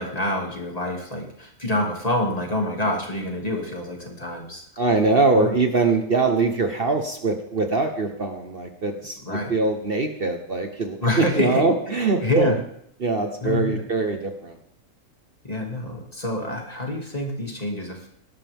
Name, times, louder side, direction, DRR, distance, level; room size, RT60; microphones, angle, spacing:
voice 1, 0.0-4.6 5.3-5.6 9.2-9.5 11.0-11.6 12.2-12.6 13.4-13.8 15.4-18.1, left 1 dB, 30° left, 1 dB, 2.7 m, -26 dB
voice 2, 4.8-12.5 13.0-14.6, right 3 dB, 45° right, 5 dB, 1.4 m, -23 dB
17.5 x 12.5 x 3.7 m, 0.70 s
omnidirectional pair, 1.4 m